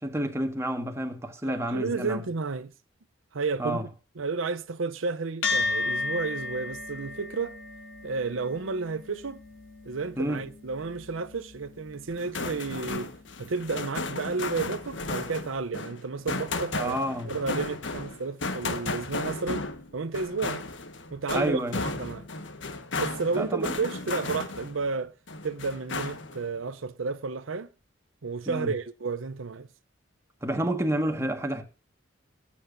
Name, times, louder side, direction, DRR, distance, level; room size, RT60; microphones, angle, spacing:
voice 1, 0.0-2.2 3.6-3.9 10.2-10.4 16.8-17.3 21.3-21.8 23.3-23.7 28.5-28.7 30.4-31.6, right 1 dB, 15° right, 1.6 m, -29 dB
voice 2, 1.4-2.7 3.3-3.8 4.2-7.6 8.0-9.4 9.8-13.1 13.4-17.0 17.2-19.7 19.9-20.6 21.1-22.3 23.0-25.1 25.4-27.7 28.2-29.7, right 4 dB, 80° right, 0.7 m, -32 dB
sound 1, 5.4-14.1, left 3 dB, 80° left, 4.0 m, -35 dB
sound 2, 12.1-24.9 25.3-26.5, left 3 dB, 65° left, 1.4 m, -34 dB
19.0 x 8.7 x 2.6 m
head